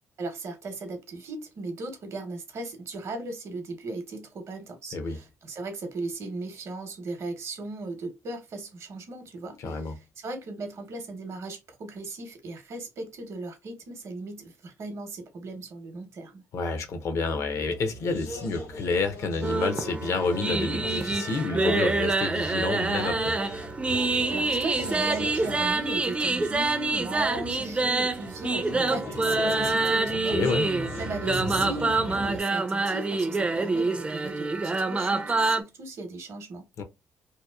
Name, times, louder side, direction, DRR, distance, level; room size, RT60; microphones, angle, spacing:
voice 1, 0.2-16.4 24.3-30.4 31.0-36.7, right 2 dB, 60° right, 0.8 m, -37 dB
voice 2, 9.6-9.9 16.5-23.4 30.3-30.7 36.8-36.9, left 4 dB, 65° left, 0.5 m, -29 dB
sound 1, 17.5-32.4, left 1 dB, 85° left, 1.3 m, -39 dB
sound 2, 19.4-35.6, right 3 dB, 20° right, 0.4 m, -26 dB
2.8 x 2.1 x 2.2 m
cardioid pair, 80°, 5 cm